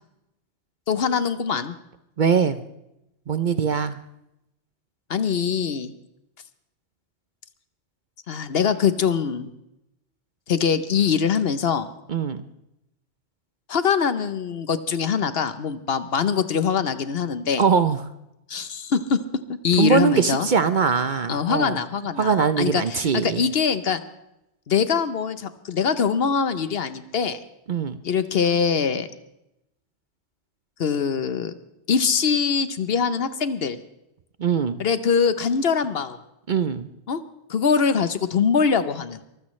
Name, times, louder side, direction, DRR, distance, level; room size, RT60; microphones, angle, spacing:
voice 1, 0.9-1.8 5.1-5.9 8.3-9.5 10.5-11.9 13.7-17.6 18.5-19.2 19.5-20.5 21.3-24.0 24.7-27.4 28.0-29.1 30.8-31.5 31.9-33.8 34.8-36.2 37.1-37.2 37.5-39.2, left 6 dB, 60° left, 12 dB, 1.0 m, -23 dB
voice 2, 2.2-2.6 3.3-4.0 12.1-12.5 17.6-18.0 19.8-21.8 22.2-23.5 27.7-28.0 34.4-34.8 36.5-36.9, right 6 dB, 50° right, 12 dB, 0.7 m, -22 dB
23.5 x 15.0 x 3.2 m, 0.86 s
omnidirectional pair, 1.2 m